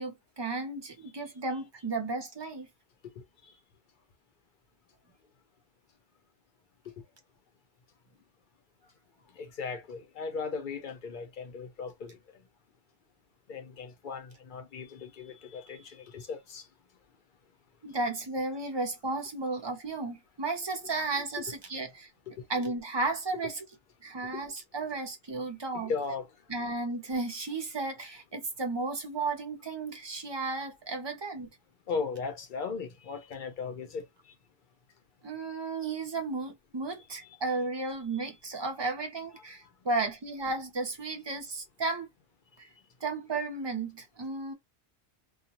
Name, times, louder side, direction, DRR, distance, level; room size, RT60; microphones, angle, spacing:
voice 1, 0.0-2.7 17.8-22.1 22.5-23.6 24.0-25.9 26.5-31.5 35.2-42.1 42.6-42.7 43.0-44.5, right 3 dB, 30° right, 0.5 m, -34 dB
voice 2, 9.4-12.2 13.5-16.6 22.3-22.4 24.3-24.4 25.7-26.3 31.9-34.1 38.2-38.3, left 5 dB, 55° left, 0.7 m, -37 dB
2.4 x 2.2 x 2.7 m
omnidirectional pair, 1.2 m